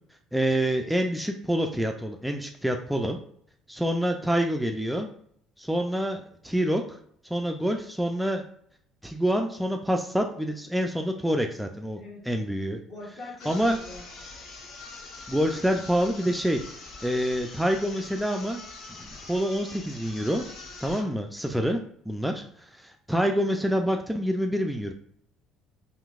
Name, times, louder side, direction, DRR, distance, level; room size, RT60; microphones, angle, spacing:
voice 1, 0.3-3.2 3.7-5.1 5.6-7.0 7.2-8.4 9.0-12.8 13.5-13.8 15.3-16.6 17.0-18.6 18.9-20.4 20.8-22.4 22.7-24.9, equal, 5° right, 4 dB, 0.3 m, -27 dB
voice 2, 12.0-12.3 12.9-14.1 22.2-22.4, left 2 dB, 55° left, -1 dB, 1.2 m, -43 dB
sound 1, 13.4-21.2, left 3 dB, 75° left, 0.9 m, -43 dB
3.8 x 2.7 x 2.4 m, 0.64 s
cardioid pair, 105°, 0 cm